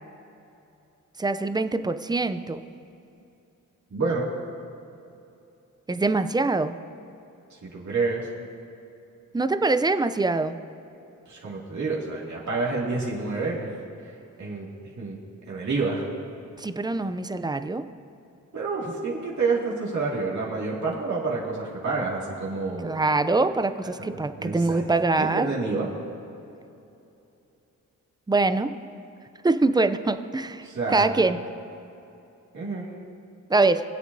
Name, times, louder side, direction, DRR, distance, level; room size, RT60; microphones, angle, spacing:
voice 1, 1.2-2.6 5.9-6.8 9.3-10.6 16.6-17.8 22.8-25.5 28.3-28.7 29.4-30.7 30.9-31.4 33.5-33.8, right 3 dB, 15° right, 10 dB, 0.4 m, -23 dB
voice 2, 3.9-4.3 7.6-8.3 11.3-13.7 14.4-14.7 15.0-15.2 15.5-16.1 18.5-22.9 24.0-24.1 24.4-24.8 25.2-25.9 30.6-31.1 32.5-32.9, right 3 dB, 55° right, -6 dB, 2.3 m, -28 dB
24.0 x 8.2 x 2.7 m, 2.8 s
wide cardioid pair, 105°, 33 cm